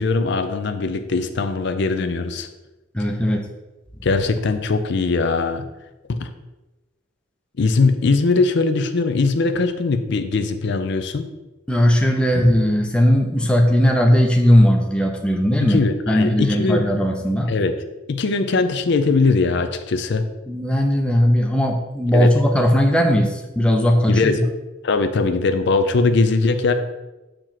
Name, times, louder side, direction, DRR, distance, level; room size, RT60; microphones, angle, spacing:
voice 1, 0.0-2.5 4.0-5.7 6.1-6.3 7.6-11.3 15.6-16.9 17.5-17.8 18.1-20.2 22.1-22.3 24.1-24.4 24.8-26.7, left 3 dB, 60° left, 8 dB, 0.5 m, -20 dB
voice 2, 2.9-3.4 11.7-15.8 16.1-17.5 20.5-24.4, equal, 5° left, 2 dB, 0.6 m, -17 dB
6.8 x 3.0 x 5.8 m, 1.1 s
head